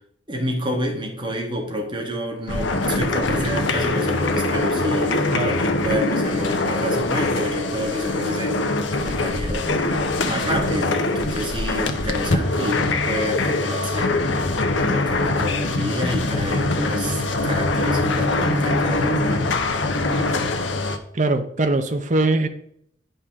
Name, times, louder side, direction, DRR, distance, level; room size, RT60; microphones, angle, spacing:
voice 1, 0.3-9.7 10.3-14.2 14.7-19.5, equal, 25° right, 1 dB, 1.7 m, -29 dB
sound 1, 2.5-21.0, left 2 dB, 85° left, 0.9 m, -23 dB
voice 2, 21.1-22.5, right 2 dB, 40° right, 8 dB, 0.7 m, -21 dB
9.6 x 5.5 x 3.6 m, 0.68 s
head